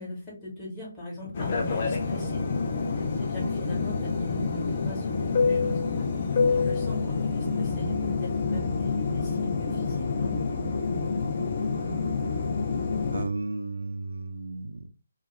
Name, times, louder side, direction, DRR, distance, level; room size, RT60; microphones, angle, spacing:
voice 1, 0.0-2.4 3.2-5.8 6.5-10.3, left 1 dB, 15° left, 1.0 m, -39 dB
sound 1, 1.3-13.3, left 4 dB, 35° left, 0.4 m, -27 dB
voice 2, 13.1-14.9, right 3 dB, 60° right, 0.3 m, -34 dB
2.3 x 2.0 x 2.9 m
figure-of-eight pair, 140°, 0 cm